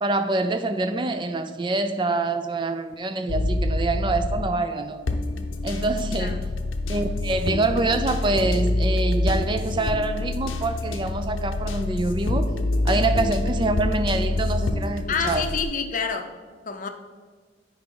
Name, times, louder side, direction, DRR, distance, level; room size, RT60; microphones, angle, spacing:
voice 1, 0.0-5.0 5.6-6.5 6.9-12.5 12.8-15.5, right 2 dB, 25° right, 0.4 m, -25 dB
sound 1, 3.3-4.6 5.1-15.6, left 2 dB, 85° left, 0.6 m, -26 dB
voice 2, 15.1-16.3 16.7-16.9, left 5 dB, 40° left, 0.6 m, -28 dB
9.0 x 4.9 x 3.8 m
head